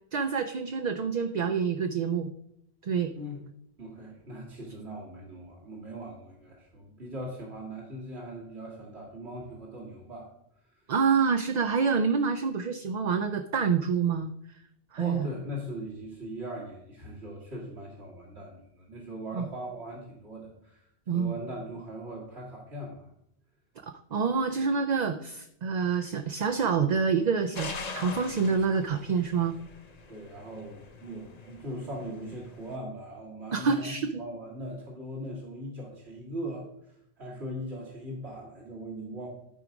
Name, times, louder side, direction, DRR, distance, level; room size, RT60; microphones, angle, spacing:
voice 1, 0.1-2.3 2.8-3.1 10.9-14.3 14.9-15.3 19.3-19.5 21.1-21.4 23.8-29.5 33.5-34.2, right 5 dB, 50° right, 7 dB, 0.6 m, -27 dB
voice 2, 3.8-10.3 10.7-10.9 15.0-23.1 30.1-39.3, equal, 80° right, -3 dB, 2.1 m, -40 dB
sound 1, 27.6-32.8, left 4 dB, 40° left, 0.8 m, -43 dB
12.5 x 4.8 x 5.1 m, 0.75 s
omnidirectional pair, 1.1 m